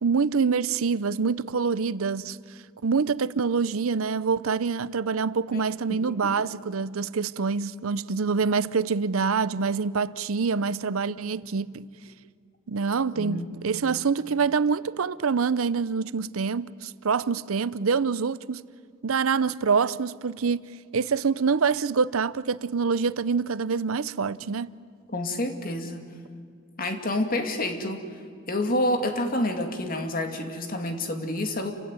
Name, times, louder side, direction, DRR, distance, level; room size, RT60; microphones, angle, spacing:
voice 1, 0.0-2.4 2.8-11.9 12.7-18.6 19.0-20.7 20.9-24.7, right 5 dB, 85° right, 0.6 m, -26 dB
voice 2, 13.1-13.5 25.1-26.1 26.8-28.0 28.5-31.7, left 1 dB, 45° left, 2.4 m, -28 dB
28.5 x 16.5 x 9.6 m
head